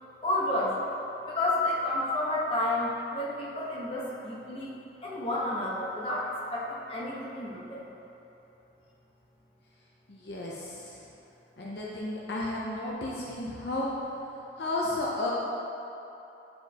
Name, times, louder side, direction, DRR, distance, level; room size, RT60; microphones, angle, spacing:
voice 1, 0.2-0.8 1.3-4.7 5.0-7.9, left 1 dB, 30° left, -6 dB, 1.2 m, -30 dB
voice 2, 10.1-11.1 11.6-13.9 14.6-15.3, left 2 dB, 65° left, -4 dB, 0.7 m, -33 dB
8.7 x 5.1 x 2.9 m, 3.0 s
head